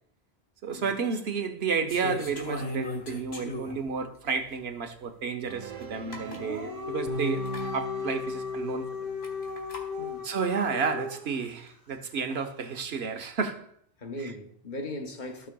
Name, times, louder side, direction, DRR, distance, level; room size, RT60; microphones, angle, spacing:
voice 1, 0.6-7.4 7.7-8.9 10.2-13.7 14.2-14.3, right 5 dB, 90° right, 1.2 m, -31 dB
sound 1, 1.9-3.9 4.5-4.6 5.8-5.9 6.1-6.4 7.4-7.6 9.2-9.8, left 2 dB, 85° left, 1.7 m, -36 dB
sound 2, 5.5-9.6, right 2 dB, 60° right, 0.8 m, -40 dB
Dog, 6.2-11.4, left 6 dB, 20° left, 1.5 m, -36 dB
voice 2, 10.0-10.4 14.0-15.5, left 1 dB, 50° left, 1.1 m, -38 dB
15.5 x 6.3 x 2.3 m
omnidirectional pair, 1.0 m